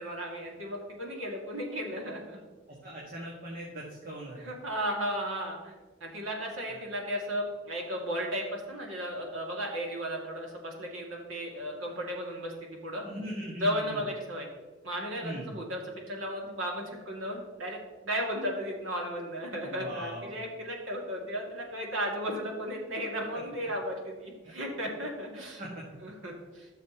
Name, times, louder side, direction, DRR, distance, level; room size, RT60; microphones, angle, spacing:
voice 1, 0.0-2.4 4.4-5.7 6.0-12.5 12.8-13.0 13.6-14.5 14.8-17.8 18.0-25.6 26.0-26.7, equal, 90° right, 0 dB, 2.3 m, -35 dB
voice 2, 2.8-4.4 6.7-6.8 13.0-14.0 15.2-15.5 19.6-20.3 24.4-24.5 25.6-25.8, right 1 dB, 45° right, -3 dB, 1.7 m, -40 dB
13.5 x 6.6 x 3.0 m, 1.3 s
head